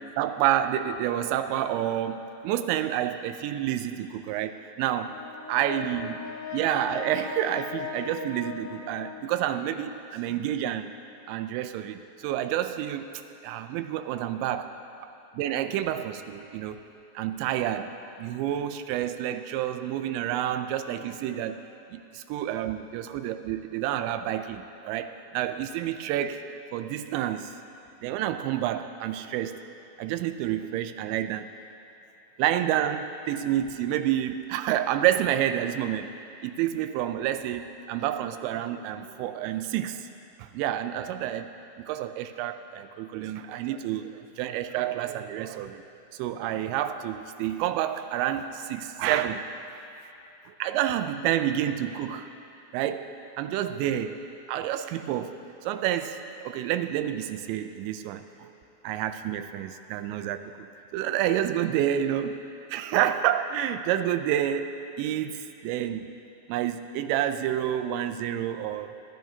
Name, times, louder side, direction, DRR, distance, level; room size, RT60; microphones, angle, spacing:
voice 1, 0.2-5.1 5.5-6.2 6.5-10.9 11.3-14.7 15.4-16.8 17.2-21.6 21.9-22.0 22.3-26.4 26.7-27.5 28.0-29.6 30.0-31.5 32.4-36.2 36.4-40.1 40.4-41.5 41.8-45.8 46.2-49.5 50.5-52.3 52.7-56.2 56.4-58.5 58.8-60.7 60.9-66.1 66.5-68.9, right 11 dB, 85° right, 9 dB, 2.8 m, -29 dB
Brass instrument, 5.1-9.5, left 7 dB, 80° left, 1.8 m, -39 dB
26.5 x 10.5 x 2.8 m, 3.0 s
omnidirectional pair, 5.3 m